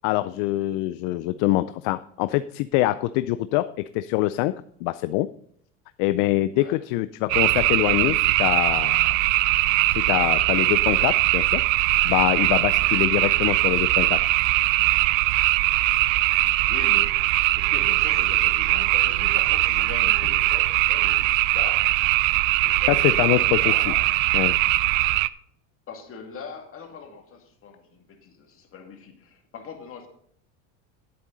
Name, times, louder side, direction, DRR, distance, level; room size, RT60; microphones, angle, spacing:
voice 1, 0.0-4.5 4.8-5.3 6.0-9.2 9.9-11.6 12.0-14.2 22.9-23.6 24.3-24.6, left 17 dB, 60° left, 14 dB, 0.5 m, -24 dB
sound 1, 7.3-25.3, right 19 dB, 75° right, 0.5 m, -21 dB
voice 2, 12.6-12.9 16.7-21.9 22.6-24.1 25.9-30.1, left 5 dB, 35° left, 3 dB, 2.3 m, -41 dB
10.5 x 8.7 x 3.9 m, 0.67 s
supercardioid pair, 115°, 39 cm